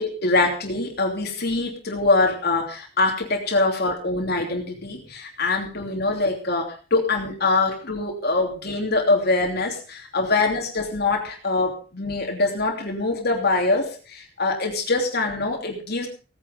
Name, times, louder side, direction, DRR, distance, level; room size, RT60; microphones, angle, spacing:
voice 1, 0.0-16.1, left 3 dB, 55° left, 2 dB, 3.0 m, -24 dB
17.5 x 9.9 x 5.2 m, 0.37 s
head